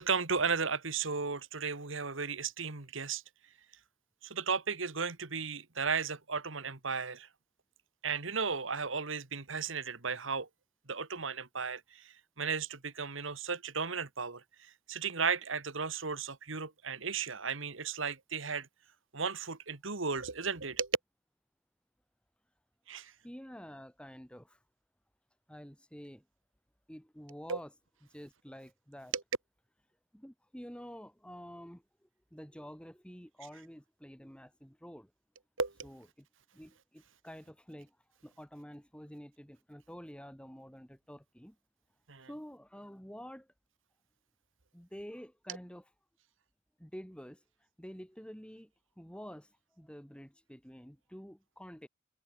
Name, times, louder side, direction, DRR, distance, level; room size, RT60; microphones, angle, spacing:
voice 1, 0.0-3.2 4.2-7.3 8.0-10.5 10.9-18.7 19.1-20.9 22.9-23.1 27.5-27.6 29.1-29.2 35.6-35.7 42.1-42.3, right 5 dB, 75° right, 1.9 m, -35 dB
voice 2, 23.2-24.6 25.5-26.2 26.9-27.7 28.1-29.1 30.1-31.8 32.3-35.1 35.8-36.3 36.5-37.9 38.2-41.5 42.3-43.5 44.7-45.8 46.8-47.4 47.8-48.7 49.0-49.5 49.8-51.9, equal, 5° left, 2.7 m, -49 dB
head